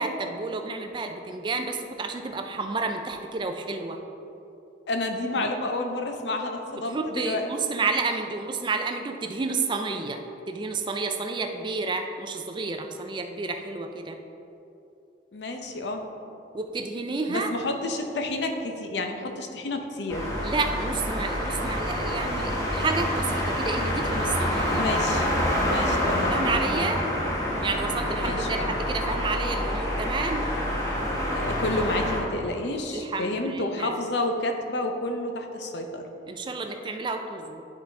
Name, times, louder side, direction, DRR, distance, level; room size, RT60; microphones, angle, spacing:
voice 1, 0.0-4.0 5.4-5.5 6.9-14.2 16.5-17.5 20.4-24.8 26.3-27.0 27.6-30.5 32.9-34.0 36.3-37.6, right 3 dB, 25° right, 5 dB, 0.3 m, -30 dB
voice 2, 4.9-7.5 15.3-16.0 17.3-20.3 24.7-25.3 25.6-26.4 28.2-28.7 31.3-36.0, left 2 dB, 70° left, 4 dB, 0.7 m, -30 dB
sound 1, 20.1-32.2, equal, 15° left, 1.1 m, -27 dB
10.5 x 3.9 x 3.4 m, 2.9 s
head